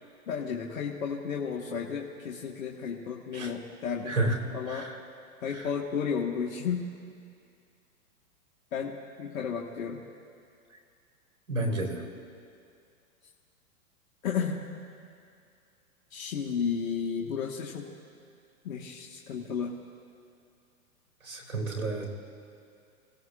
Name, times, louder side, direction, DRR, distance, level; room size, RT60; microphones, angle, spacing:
voice 1, 0.3-4.2 4.5-4.9 5.4-6.9 8.7-10.0 14.2-14.6 16.1-17.9 18.6-19.7, left 6 dB, 65° left, -1 dB, 1.7 m, -33 dB
voice 2, 11.5-12.0 21.3-22.1, right 2 dB, 75° right, 1 dB, 4.2 m, -29 dB
28.5 x 17.0 x 2.5 m, 2.4 s
hypercardioid pair, 120°, 43 cm